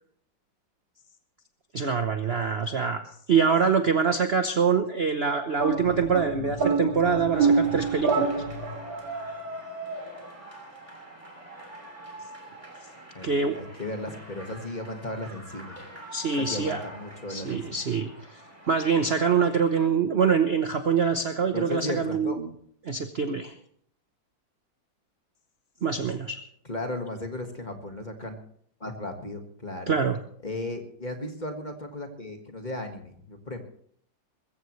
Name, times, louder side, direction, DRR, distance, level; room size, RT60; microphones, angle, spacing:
voice 1, 1.7-3.0 3.3-8.3 13.2-13.6 16.1-16.8 17.3-18.4 18.7-22.5 22.8-23.5 25.8-26.4 29.9-30.2, right 6 dB, 45° right, 7 dB, 0.9 m, -25 dB
sound 1, 5.6-9.0, right 4 dB, 85° right, 3.5 m, -26 dB
voice 2, 7.0-7.8 13.1-15.8 16.4-17.8 21.5-22.4 26.6-28.4 28.8-29.9 30.4-33.6, left 2 dB, 25° left, 5 dB, 1.7 m, -36 dB
sound 2, 7.3-19.9, right 1 dB, 15° right, 3.1 m, -43 dB
21.5 x 15.0 x 3.2 m, 0.63 s
omnidirectional pair, 2.0 m